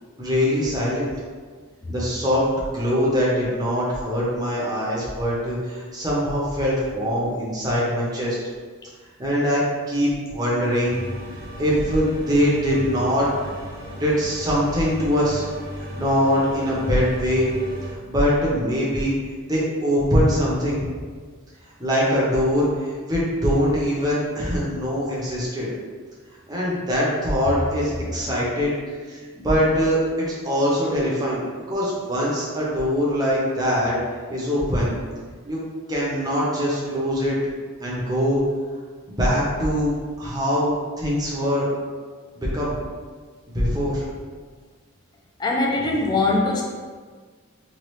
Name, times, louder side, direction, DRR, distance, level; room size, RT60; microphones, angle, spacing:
voice 1, 0.2-1.1 1.9-8.4 9.2-11.0 11.3-13.3 14.0-15.4 16.0-17.5 17.9-19.1 19.4-20.9 21.8-25.7 26.5-28.8 29.0-31.4 31.7-34.0 34.3-34.9 35.4-35.6 35.9-37.4 37.8-38.4 39.1-41.7 42.4-42.8 43.5-44.0, equal, 20° right, -6 dB, 0.6 m, -22 dB
sound 1, 10.8-17.9, equal, 55° right, 0.7 m, -36 dB
voice 2, 28.0-28.4 45.4-46.6, left 2 dB, 20° left, -2 dB, 0.3 m, -22 dB
3.0 x 2.4 x 3.1 m, 1.5 s
head